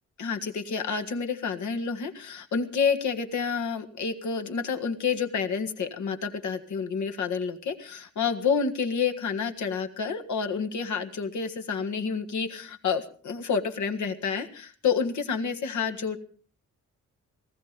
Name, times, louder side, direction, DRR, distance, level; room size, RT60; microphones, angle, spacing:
voice 1, 0.2-16.2, left 6 dB, 80° left, 6 dB, 1.8 m, -29 dB
19.0 x 15.0 x 5.2 m, 0.44 s
wide cardioid pair, 130°, 29 cm